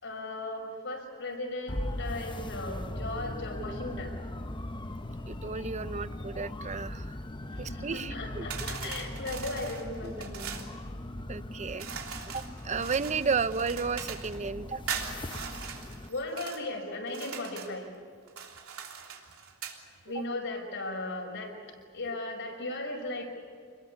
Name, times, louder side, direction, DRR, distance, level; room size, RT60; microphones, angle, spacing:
voice 1, 0.0-4.2 7.4-10.5 16.1-17.9 20.0-21.5 21.9-23.3, left 2 dB, 60° left, 2 dB, 5.9 m, -37 dB
sound 1, 1.7-16.1, left 1 dB, 20° left, 0.9 m, -39 dB
voice 2, 5.3-7.1 7.6-8.5 10.0-10.1 11.3-11.9 12.3-14.8, right 5 dB, 35° right, 14 dB, 0.6 m, -33 dB
sound 2, 8.5-10.7 11.8-14.4 14.9-16.6 17.1-17.8 18.3-19.8, right 7 dB, 70° right, 3.4 m, -40 dB
27.5 x 22.0 x 8.4 m, 2.1 s
head